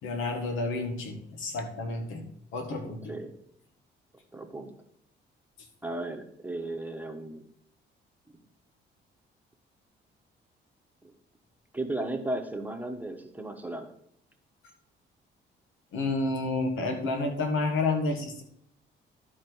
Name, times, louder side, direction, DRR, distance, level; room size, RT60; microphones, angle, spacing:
voice 1, 0.0-2.2 2.5-3.1 15.9-18.4, left 3 dB, 85° left, 4 dB, 1.7 m, -30 dB
voice 2, 2.8-3.3 4.3-4.7 5.8-7.4 11.0-11.1 11.7-13.9, right 2 dB, 10° right, 4 dB, 1.2 m, -35 dB
12.5 x 4.5 x 4.6 m, 0.70 s
cardioid pair, 90°, 20 cm